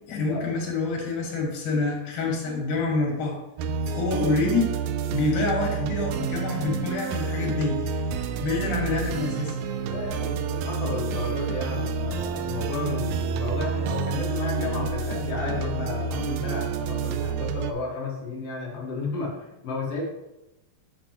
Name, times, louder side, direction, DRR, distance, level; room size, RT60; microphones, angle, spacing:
voice 1, 0.1-3.4 3.9-4.7 5.1-8.0 8.4-9.5, left 3 dB, 80° left, 0 dB, 3.2 m, -27 dB
sound 1, 3.6-17.7, right 5 dB, 80° right, 1.8 m, -29 dB
voice 2, 9.9-20.1, left 3 dB, 55° left, -3 dB, 2.5 m, -32 dB
7.5 x 6.5 x 2.9 m, 0.92 s
omnidirectional pair, 3.5 m